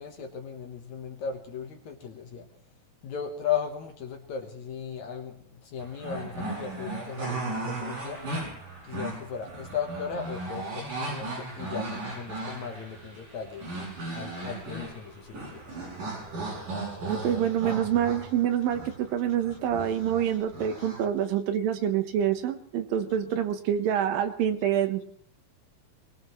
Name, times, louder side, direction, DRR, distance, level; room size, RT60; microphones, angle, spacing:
voice 1, 0.0-2.4 3.0-5.3 5.7-8.2 8.9-11.3 11.6-13.6 14.1-15.6 20.8-20.9, left 7 dB, 60° left, 4 dB, 2.2 m, -36 dB
sound 1, 5.8-21.0, right 2 dB, 60° right, 8.5 m, -36 dB
voice 2, 17.1-25.2, right 9 dB, 75° right, 8 dB, 2.7 m, -27 dB
22.5 x 20.5 x 3.1 m, 0.62 s
omnidirectional pair, 4.3 m